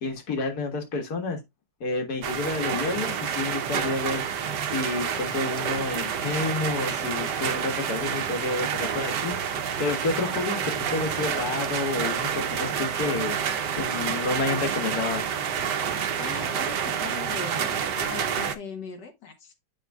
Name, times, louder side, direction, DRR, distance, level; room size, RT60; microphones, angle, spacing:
voice 1, 0.0-1.4 1.8-4.2 4.7-13.4 13.7-15.3, left 3 dB, 65° left, 2.1 m, -30 dB
sound 1, 2.2-18.5, right 8 dB, 85° right, 1.4 m, -28 dB
voice 2, 16.1-17.7 17.9-19.5, left 5 dB, 90° left, 1.9 m, -39 dB
9.1 x 6.2 x 2.3 m
omnidirectional pair, 1.8 m